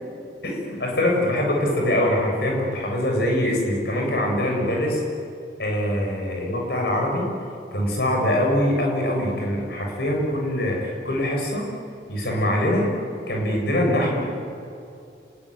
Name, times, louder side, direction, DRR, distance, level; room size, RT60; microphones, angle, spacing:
voice 1, 0.4-5.0 5.6-7.3 7.7-11.7 12.1-12.9 13.3-14.3, left 1 dB, 60° left, 0 dB, 7.6 m, -23 dB
30.0 x 20.0 x 9.7 m, 2.5 s
head